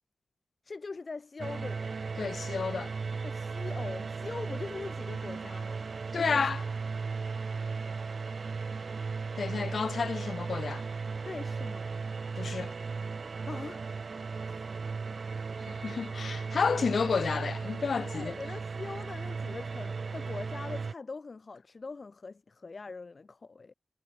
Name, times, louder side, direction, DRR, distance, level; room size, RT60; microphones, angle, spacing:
voice 1, 0.6-2.0 3.2-5.9 6.2-6.5 11.3-12.0 13.5-13.8 18.0-23.7, left 4 dB, 55° left, 7.1 m, -42 dB
sound 1, 1.4-20.9, right 4 dB, 65° right, 3.6 m, -36 dB
voice 2, 2.2-2.9 6.1-6.6 9.4-10.8 12.4-12.7 15.7-18.3, left 5 dB, 80° left, 2.8 m, -31 dB
cardioid pair, 60°, 0 cm